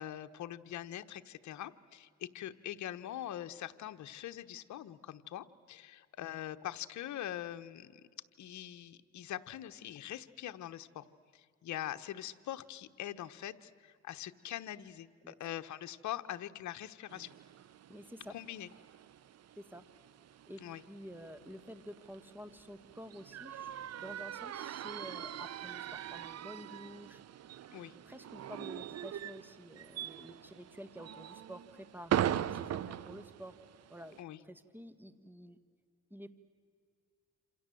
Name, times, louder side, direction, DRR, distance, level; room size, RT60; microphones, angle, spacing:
voice 1, 0.0-8.0 8.4-11.0 11.3-17.3 18.3-18.7 20.6-20.8 27.7-27.9 34.2-34.4, left 12 dB, 70° left, 9 dB, 1.1 m, -43 dB
sound 1, 17.1-34.2, right 10 dB, 55° right, 0.8 m, -41 dB
voice 2, 17.9-18.3 19.6-19.8 20.5-20.6 20.9-27.2 28.0-33.6 33.9-35.6 36.1-36.3, equal, 5° right, 12 dB, 1.8 m, -50 dB
Rain, 21.0-26.4, left 3 dB, 45° left, 4.5 m, -71 dB
27.5 x 27.0 x 7.8 m, 2.1 s
cardioid pair, 90°, 30 cm